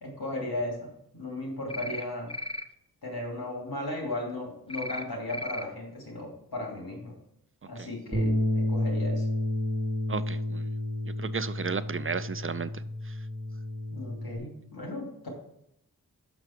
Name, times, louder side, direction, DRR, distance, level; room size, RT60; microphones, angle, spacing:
voice 1, 0.0-2.3 3.0-7.2 7.7-9.3 13.9-15.3, left 1 dB, 85° left, 0 dB, 2.8 m, -36 dB
sound 1, 1.7-2.0 2.3-2.6 4.7-5.0 5.3-5.6, equal, 15° left, 0.6 m, -35 dB
Bass guitar, 8.1-14.4, left 1 dB, 10° right, 2.6 m, -30 dB
voice 2, 10.1-10.7 11.2-13.1, right 5 dB, 35° right, 14 dB, 0.4 m, -34 dB
6.5 x 6.0 x 5.9 m, 0.77 s
wide cardioid pair, 50°, 36 cm